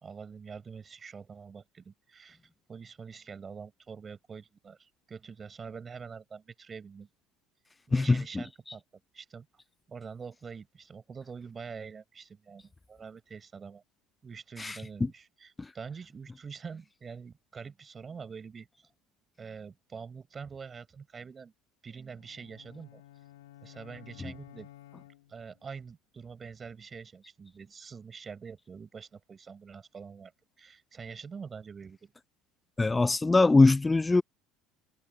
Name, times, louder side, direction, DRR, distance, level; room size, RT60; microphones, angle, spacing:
voice 1, 0.0-2.4 2.7-7.1 7.9-8.8 9.1-9.5 9.9-13.8 14.2-18.9 19.4-21.5 21.8-23.0 23.6-24.7 25.3-30.3 30.6-32.1, right 6 dB, 30° right, 4.9 m, -45 dB
voice 2, 7.9-8.2 14.6-14.7 15.0-15.1 15.6-15.7 32.8-34.2, left 3 dB, 15° left, 0.7 m, -22 dB
sound 1, 22.1-25.7, left 13 dB, 85° left, 2.2 m, -53 dB
hypercardioid pair, 75°, 0 cm